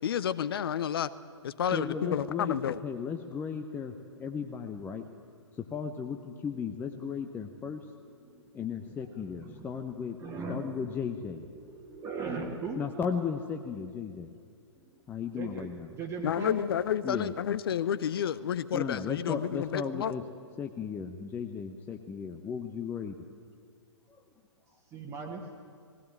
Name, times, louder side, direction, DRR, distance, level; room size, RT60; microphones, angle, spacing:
voice 1, 0.0-1.1 1.4-2.8 16.2-20.1, left 9 dB, 50° left, 16 dB, 0.8 m, -30 dB
voice 2, 1.7-3.9 4.2-5.0 5.7-7.9 8.5-10.2 10.5-11.4 12.8-14.3 15.1-15.9 17.0-17.3 18.7-20.2 20.6-23.2, left 6 dB, 10° left, 4 dB, 0.8 m, -35 dB
voice 3, 7.8-9.8 10.2-12.8 14.8-16.7 24.9-25.4, right 4 dB, 15° right, 1 dB, 1.6 m, -40 dB
19.0 x 17.0 x 9.1 m, 2.3 s
figure-of-eight pair, 120°, 15 cm